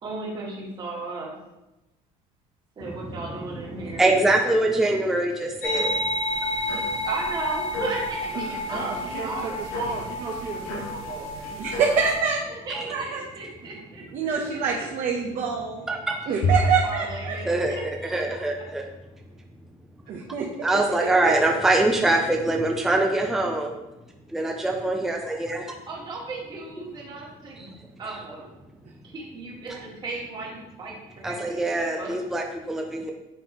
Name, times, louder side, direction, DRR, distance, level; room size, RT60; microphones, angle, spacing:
voice 1, 0.0-1.3 2.8-4.1 7.0-9.9 12.5-14.6 16.3-17.8 18.3-18.6 25.9-28.5 29.0-31.6 32.0-32.2, right 3 dB, 30° right, -3 dB, 1.7 m, -36 dB
voice 2, 2.9-3.2 3.5-6.0 12.7-12.8 15.9-16.2 17.5-18.8 20.6-23.7 24.3-25.7 27.6-27.7 29.7-29.8 31.2-33.1, right 2 dB, 5° right, 1 dB, 0.4 m, -24 dB
sound 1, 5.6-12.2, left 1 dB, 85° left, 1.6 m, -30 dB
voice 3, 8.6-11.8, right 4 dB, 80° right, -3 dB, 2.0 m, -35 dB
voice 4, 11.6-12.4 12.9-13.2 14.1-15.9 16.3-17.4 20.1-20.7 21.0-21.3, right 6 dB, 55° right, -1 dB, 0.9 m, -26 dB
Bowed string instrument, 16.4-19.0, left 1 dB, 50° left, 0.8 m, -28 dB
9.7 x 4.1 x 3.0 m, 0.98 s
cardioid pair, 160°, 15 cm